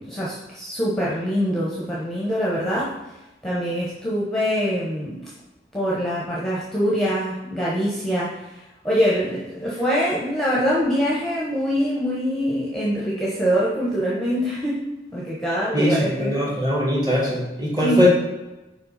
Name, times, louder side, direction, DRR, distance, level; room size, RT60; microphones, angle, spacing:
voice 1, 0.0-2.9 3.4-5.3 5.7-14.8 15.1-16.4 17.8-18.1, equal, ahead, -6 dB, 1.1 m, -24 dB
voice 2, 15.7-18.1, left 1 dB, 20° right, -3 dB, 2.1 m, -21 dB
5.5 x 4.5 x 5.7 m, 1.0 s
head